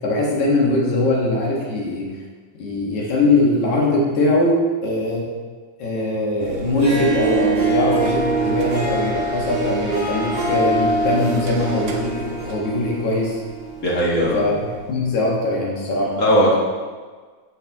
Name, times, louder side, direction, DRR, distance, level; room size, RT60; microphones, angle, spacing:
voice 1, 0.0-2.1 2.6-5.3 5.8-13.4 14.3-16.1, left 2 dB, 65° left, -3 dB, 2.8 m, -21 dB
sound 1, 6.4-15.1, right 3 dB, 75° right, 1.5 m, -34 dB
Harp, 6.7-14.1, right 2 dB, 35° right, 0.8 m, -24 dB
voice 2, 13.8-14.4 16.1-16.5, equal, 40° left, -6 dB, 1.3 m, -17 dB
14.0 x 4.6 x 3.5 m, 1.5 s
omnidirectional pair, 3.9 m